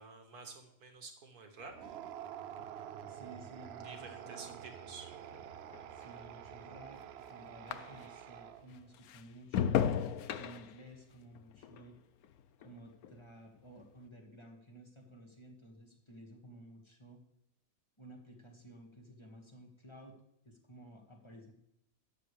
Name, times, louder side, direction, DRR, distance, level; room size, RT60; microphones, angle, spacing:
voice 1, 0.0-2.0 3.8-5.1, right 4 dB, 85° right, 5 dB, 2.0 m, -50 dB
sound 1, 1.6-8.3 8.7-13.2 13.6-14.0, left 9 dB, 75° left, 1.1 m, -39 dB
sound 2, 1.7-8.9, right 10 dB, 70° right, 0.6 m, -48 dB
voice 2, 3.1-4.6 5.9-7.0 7.3-9.9 10.3-12.0 12.6-17.2 18.0-20.2 20.5-21.5, right 1 dB, 20° left, 1 dB, 1.8 m, -54 dB
12.0 x 9.3 x 3.4 m, 0.82 s
omnidirectional pair, 1.6 m